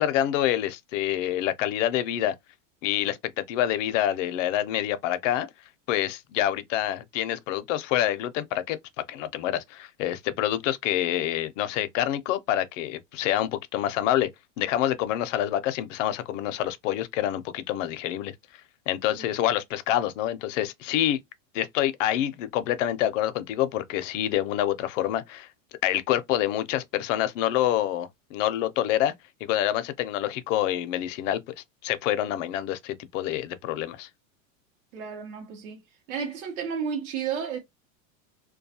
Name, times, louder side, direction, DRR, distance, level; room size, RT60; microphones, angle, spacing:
voice 1, 0.0-2.3 2.8-5.5 5.9-8.8 9.1-14.3 14.6-18.3 18.9-21.2 21.5-25.5 25.8-29.1 29.4-31.4 31.8-34.1, left 12 dB, 65° left, 0.5 m, -27 dB
voice 2, 34.9-35.8 36.1-37.6, right 7 dB, 85° right, 0.9 m, -32 dB
2.3 x 2.3 x 2.7 m
supercardioid pair, 160°, 40 cm